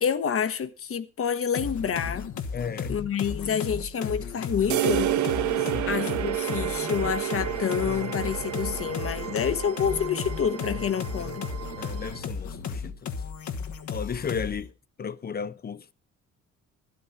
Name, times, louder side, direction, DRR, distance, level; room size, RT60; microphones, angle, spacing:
voice 1, 0.0-2.3 2.9-5.2 5.9-11.5, left 7 dB, 45° left, 1.2 m, -28 dB
sound 1, 1.5-14.7, left 6 dB, 70° left, 1.4 m, -34 dB
voice 2, 2.5-3.1 5.6-5.9 11.8-13.1 13.9-14.7 15.0-15.9, left 6 dB, 30° left, 0.6 m, -34 dB
sound 2, 4.7-12.2, right 13 dB, 70° right, 0.7 m, -30 dB
sound 3, 6.2-12.2, right 6 dB, 50° right, 2.4 m, -43 dB
12.5 x 11.0 x 4.0 m
cardioid pair, 90°, 30 cm